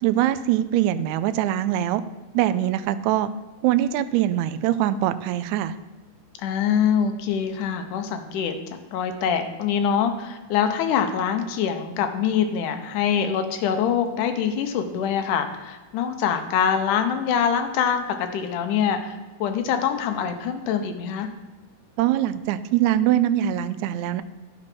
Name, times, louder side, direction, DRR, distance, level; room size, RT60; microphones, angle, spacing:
voice 1, 0.0-2.0 2.3-3.3 3.6-5.7 22.0-24.2, right 12 dB, 85° right, 13 dB, 1.6 m, -22 dB
voice 2, 6.4-8.6 8.9-21.3, left 7 dB, 75° left, 7 dB, 2.3 m, -24 dB
10.0 x 6.1 x 6.0 m, 1.2 s
omnidirectional pair, 3.8 m